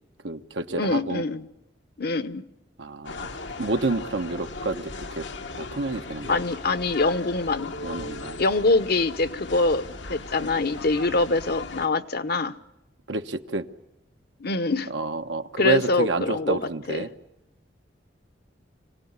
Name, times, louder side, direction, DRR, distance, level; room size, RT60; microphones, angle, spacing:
voice 1, 0.2-1.2 2.8-3.3 3.6-5.3 5.6-6.4 7.6-8.4 13.1-13.7 14.9-17.1, right 3 dB, 80° right, 8 dB, 1.1 m, -29 dB
voice 2, 0.8-1.4 2.0-2.5 6.3-7.7 8.4-12.5 14.4-14.9 15.6-16.6 16.9-17.1, left 3 dB, 60° left, 11 dB, 0.9 m, -24 dB
sound 1, 3.0-11.9, left 3 dB, 85° left, 1.3 m, -37 dB
26.0 x 17.5 x 9.6 m, 0.92 s
head